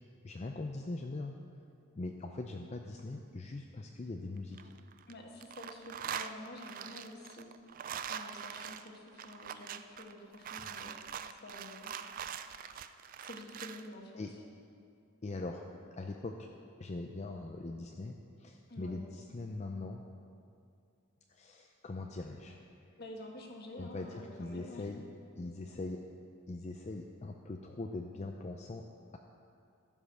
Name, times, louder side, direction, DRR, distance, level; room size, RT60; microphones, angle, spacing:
voice 1, 0.2-1.4 2.0-4.6 14.2-14.3 15.2-15.6 16.0-16.5 16.8-20.0 21.3-22.6 23.8-25.0 25.4-26.0 26.5-28.8, left 2 dB, 30° left, 3 dB, 0.4 m, -41 dB
sound 1, 4.4-5.1 5.4-13.9, right 8 dB, 40° right, 0.3 m, -43 dB
voice 2, 5.1-7.5 8.0-11.0 11.4-12.0 13.2-14.2 18.7-19.0 23.0-24.9, left 1 dB, 50° left, 1 dB, 1.4 m, -49 dB
14.0 x 5.4 x 6.3 m, 2.4 s
head